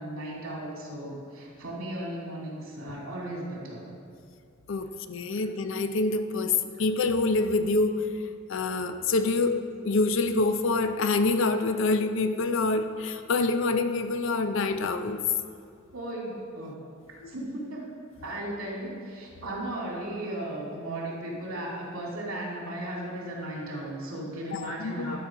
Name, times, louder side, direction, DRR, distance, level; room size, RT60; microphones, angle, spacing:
voice 1, 0.0-3.8 15.9-16.8 17.3-17.9 18.2-25.2, right 1 dB, 85° right, -3 dB, 2.4 m, -36 dB
voice 2, 4.7-6.5 6.8-8.0 8.5-15.2 17.2-17.3 24.5-25.2, left 3 dB, 65° left, 9 dB, 0.5 m, -26 dB
11.0 x 4.4 x 5.8 m, 2.3 s
head